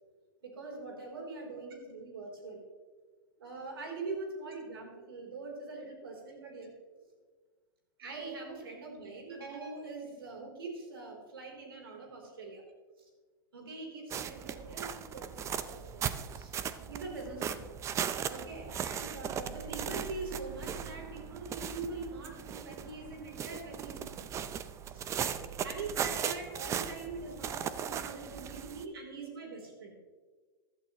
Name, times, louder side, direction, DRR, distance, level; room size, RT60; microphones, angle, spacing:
voice 1, 0.4-2.6 3.4-6.7 8.0-12.6 13.5-16.5 16.9-17.7 17.9-24.5 24.9-25.1 25.6-30.0, right 3 dB, 85° right, 1 dB, 3.7 m, -43 dB
sound 1, 14.1-28.8, right 8 dB, 25° right, 0.6 m, -38 dB
15.0 x 12.0 x 3.1 m, 1.4 s
hypercardioid pair, 125°, 12 cm